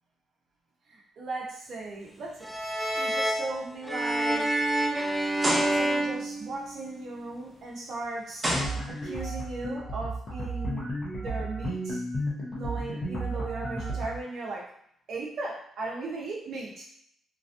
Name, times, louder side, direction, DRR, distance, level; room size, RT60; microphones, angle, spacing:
voice 1, 0.9-2.6 2.9-4.5 5.7-8.5 8.9-12.0 12.5-14.7 15.1-16.8, right 2 dB, 60° right, -3 dB, 1.0 m, -37 dB
sound 1, 2.2-2.6 3.1-3.2 3.9-4.0 5.4-6.1 7.6-7.7 8.4-9.3, equal, 15° right, 0.8 m, -30 dB
sound 2, 2.4-7.0, right 1 dB, ahead, 0.4 m, -28 dB
sound 3, 8.5-14.2, right 1 dB, 45° left, 1.0 m, -33 dB
3.2 x 2.4 x 2.6 m, 0.66 s
cardioid pair, 90°, 0 cm